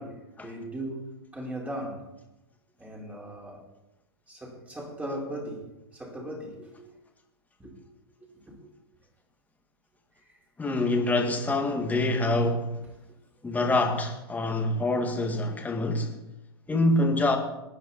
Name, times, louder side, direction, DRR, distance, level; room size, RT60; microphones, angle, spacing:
voice 1, 0.0-2.1 2.8-3.7 4.3-7.0 7.6-7.8 8.2-8.7 10.2-10.4 16.7-16.9, right 1 dB, 10° right, 4.3 m, -39 dB
voice 2, 10.6-12.8 13.4-16.2 16.7-17.4, left 2 dB, 10° left, 2.0 m, -25 dB
19.5 x 10.0 x 4.2 m
hypercardioid pair, 105°, 14 cm